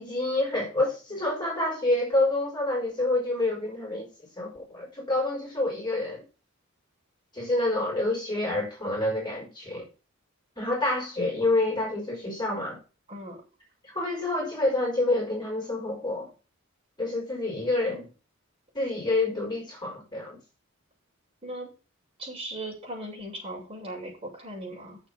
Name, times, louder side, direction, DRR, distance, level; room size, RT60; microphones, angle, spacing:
voice 1, 0.0-4.1 4.4-6.2 7.3-9.8 10.6-12.8 13.8-16.3 17.0-18.1 18.7-20.4, left 2 dB, 20° left, 5.6 m, -28 dB
voice 2, 22.2-25.0, right 1 dB, 30° right, 7.3 m, -38 dB
8.1 x 7.6 x 7.2 m
head